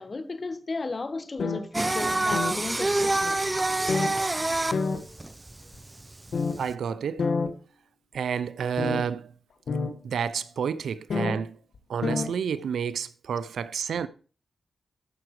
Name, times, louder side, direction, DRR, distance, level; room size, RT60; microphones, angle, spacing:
voice 1, 0.0-3.4, left 3 dB, 45° left, 1.3 m, -34 dB
sound 1, 1.4-1.6 2.3-2.5 3.2-3.3 3.9-4.1 4.7-5.0 5.7-5.8 6.3-6.6 7.2-7.5 8.8-9.0 9.7-9.9 11.1-11.3 11.7-11.8 12.0-12.3, left 4 dB, 75° left, 1.8 m, -27 dB
Singing, 1.7-6.7, right 2 dB, 25° right, 0.7 m, -27 dB
voice 2, 6.6-7.3 8.1-9.3 10.0-11.6 11.9-14.1, right 7 dB, 85° right, 0.6 m, -30 dB
14.0 x 6.0 x 4.8 m
cardioid pair, 55°, 0 cm